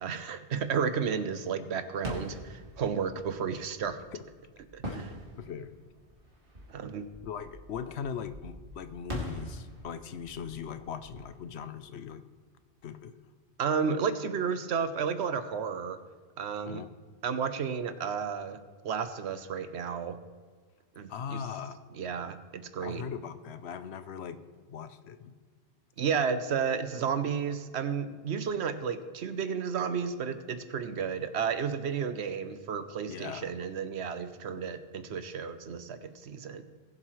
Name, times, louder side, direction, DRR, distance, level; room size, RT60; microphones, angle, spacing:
voice 1, 0.0-4.0 4.7-5.1 6.7-7.1 13.6-16.0 16.4-16.8 17.2-20.2 21.0-21.4 21.9-23.0 26.0-36.6, right 6 dB, 80° right, 11 dB, 1.0 m, -32 dB
sound 1, 1.9-12.5, equal, 55° right, 2.5 m, -44 dB
voice 2, 5.4-5.7 7.2-12.2 12.8-13.1 16.7-16.9 21.1-21.8 22.8-24.4 24.7-25.3 33.1-33.5, left 7 dB, 80° left, 11 dB, 0.9 m, -39 dB
20.0 x 7.7 x 3.1 m, 1.5 s
omnidirectional pair, 1.1 m